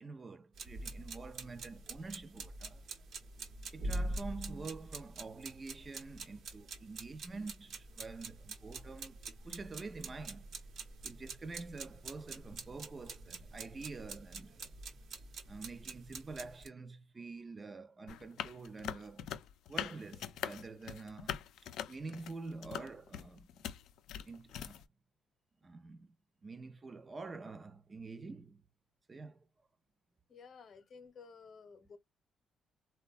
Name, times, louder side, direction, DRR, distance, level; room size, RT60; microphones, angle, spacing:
voice 1, 0.0-2.9 3.7-10.5 11.0-14.7 15.5-19.3 19.7-21.4 21.9-23.6 24.3-24.8 25.6-26.2 26.4-28.6 29.1-29.4, right 3 dB, 30° right, 0.3 m, -47 dB
sound 1, 0.6-16.7, right 2 dB, 70° right, 0.9 m, -45 dB
sound 2, 18.1-24.8, left 10 dB, 85° left, 0.3 m, -42 dB
voice 2, 30.3-32.0, left 5 dB, 55° left, 0.7 m, -54 dB
3.2 x 2.2 x 2.3 m
cardioid pair, 90°, 0 cm